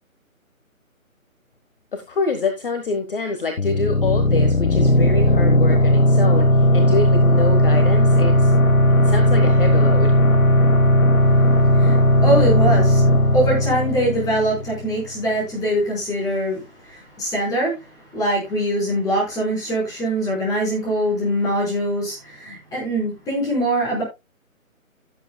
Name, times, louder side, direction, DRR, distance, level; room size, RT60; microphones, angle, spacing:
voice 1, 1.9-8.5 9.0-10.1, left 3 dB, 40° left, 6 dB, 1.5 m, -26 dB
sound 1, 3.6-15.0, left 1 dB, 70° left, 1.5 m, -16 dB
voice 2, 11.7-13.0 13.3-24.0, right 1 dB, 10° left, -3 dB, 5.1 m, -23 dB
16.0 x 8.0 x 2.3 m, 0.23 s
figure-of-eight pair, 150°, 42 cm